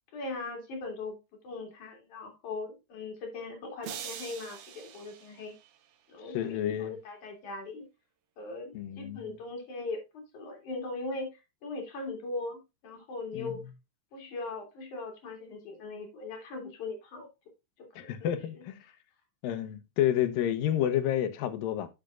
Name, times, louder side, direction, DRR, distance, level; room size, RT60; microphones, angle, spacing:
voice 1, 0.1-1.2 1.4-5.5 6.1-7.9 8.4-13.6 14.1-17.3 17.8-17.9 18.6-18.7, left 3 dB, 65° left, 3.9 m, -39 dB
sound 1, 3.8-6.1, right 9 dB, 70° right, 2.4 m, -44 dB
voice 2, 6.3-7.0 8.7-9.3 13.3-13.5 18.0-18.8 19.4-21.9, left 11 dB, 90° left, 2.8 m, -30 dB
10.0 x 7.4 x 2.4 m
omnidirectional pair, 3.9 m